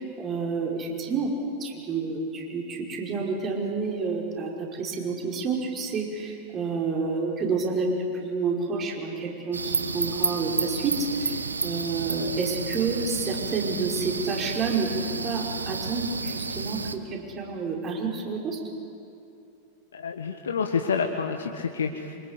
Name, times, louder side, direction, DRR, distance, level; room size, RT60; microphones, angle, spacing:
voice 1, 0.0-1.3 1.6-18.6, right 4 dB, 30° right, -1 dB, 5.3 m, -29 dB
sound 1, 9.5-17.0, right 4 dB, 75° right, 1.2 m, -31 dB
voice 2, 19.9-22.2, left 6 dB, 70° left, 4 dB, 1.4 m, -28 dB
27.5 x 26.0 x 8.3 m, 2.6 s
figure-of-eight pair, 90°, 0 cm